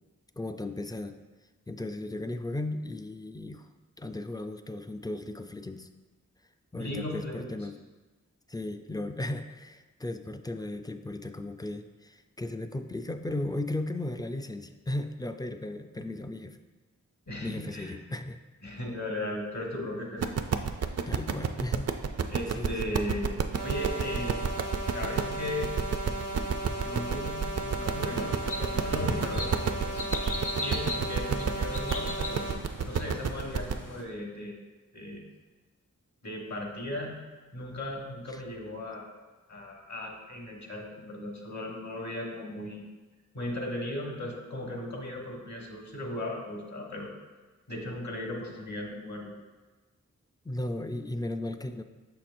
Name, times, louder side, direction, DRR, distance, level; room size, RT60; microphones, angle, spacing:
voice 1, 0.4-1.2 1.7-3.7 4.0-5.9 6.7-7.8 8.5-16.6 17.4-18.4 21.1-21.9 22.5-22.9 24.2-24.3 50.4-51.8, left 1 dB, 15° left, 7 dB, 0.3 m, -36 dB
voice 2, 6.8-7.5 17.3-17.9 18.6-20.4 22.3-24.4 24.9-25.7 26.6-29.8 30.6-32.4 32.8-34.5 34.9-35.2 36.2-37.2 37.5-39.1 39.5-42.8 43.3-47.1 47.7-49.3, left 1 dB, 65° left, -1 dB, 1.4 m, -37 dB
sound 1, 20.2-33.8, right 6 dB, 55° right, 0.4 m, -30 dB
sound 2, 23.5-32.5, right 1 dB, 90° right, 1.1 m, -36 dB
sound 3, 27.8-34.0, left 2 dB, 90° left, 0.7 m, -38 dB
6.4 x 5.9 x 2.5 m, 1.3 s
wide cardioid pair, 45°, 31 cm